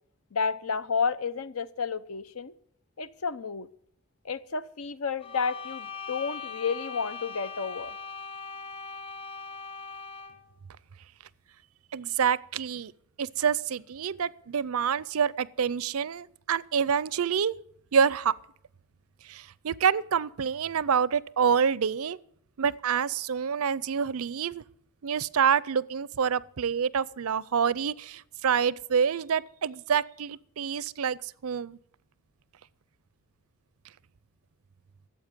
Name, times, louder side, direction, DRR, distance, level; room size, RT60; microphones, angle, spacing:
voice 1, 0.3-2.5 3.0-3.7 4.2-7.9, left 5 dB, 70° left, 0.8 m, -31 dB
sound 1, 5.2-10.5, left 5 dB, 25° left, 1.1 m, -40 dB
voice 2, 11.9-12.9 13.2-17.5 17.9-18.3 19.2-22.2 22.6-24.6 25.0-31.8, right 7 dB, 70° right, 0.5 m, -27 dB
14.0 x 7.9 x 9.7 m
head